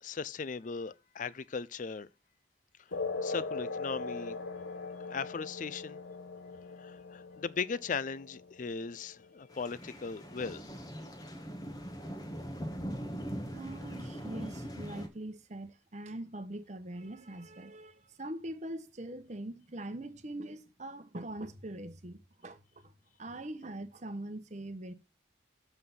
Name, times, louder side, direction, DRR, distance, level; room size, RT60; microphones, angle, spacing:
voice 1, 0.0-2.1 3.2-4.4 5.1-6.0 6.8-10.8, left 5 dB, 45° left, 0.4 m, -38 dB
sound 1, 2.9-9.9, left 3 dB, 80° left, 0.9 m, -40 dB
sound 2, 9.5-15.1, equal, 20° left, 1.2 m, -41 dB
voice 2, 13.5-22.9 23.2-24.9, right 1 dB, 40° right, 0.9 m, -42 dB
7.7 x 5.7 x 5.7 m
head